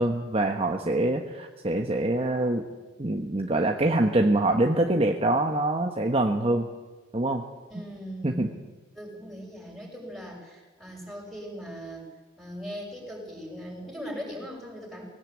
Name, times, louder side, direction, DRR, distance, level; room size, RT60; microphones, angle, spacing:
voice 1, 0.0-2.6 3.0-6.7 7.1-7.4 8.2-8.5, right 1 dB, 30° right, 3 dB, 1.2 m, -24 dB
voice 2, 7.7-8.4 8.9-12.1 12.4-15.1, equal, ahead, -2 dB, 6.8 m, -39 dB
20.0 x 17.0 x 8.5 m, 1.2 s
head